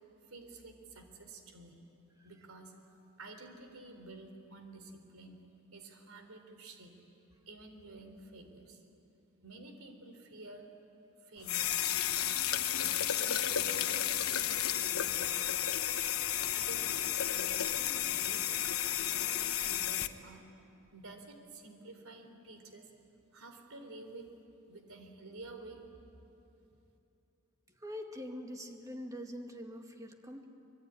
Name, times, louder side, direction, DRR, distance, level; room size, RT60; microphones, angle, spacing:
voice 1, 0.3-1.8 2.2-5.4 5.7-6.9 7.5-8.8 9.4-10.7 11.2-11.7 12.2-12.3 12.8-15.8 16.2-20.4 20.9-22.9 23.3-24.3 24.7-25.8, right 2 dB, 75° right, 6 dB, 3.7 m, -51 dB
sound 1, 11.4-20.1, left 11 dB, 75° left, 1.0 m, -32 dB
voice 2, 27.7-30.5, equal, 15° right, 3 dB, 2.2 m, -44 dB
25.0 x 23.0 x 10.0 m, 2.9 s
head